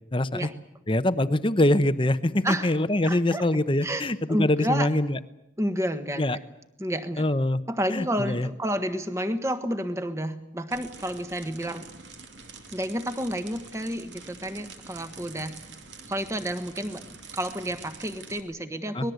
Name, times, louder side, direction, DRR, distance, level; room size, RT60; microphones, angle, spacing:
voice 1, 0.1-0.5 0.9-5.2 6.2-6.4 7.2-7.6 7.9-8.5 18.9-19.1, left 1 dB, 25° left, 12 dB, 0.8 m, -24 dB
voice 2, 3.0-3.4 3.8-4.9 5.6-6.4 6.8-7.3 7.7-11.9 12.7-15.5 16.1-17.0 17.3-19.1, equal, 15° right, 9 dB, 1.4 m, -30 dB
sound 1, 10.7-18.4, right 4 dB, 70° right, 2.6 m, -46 dB
25.0 x 20.0 x 8.0 m, 0.86 s
head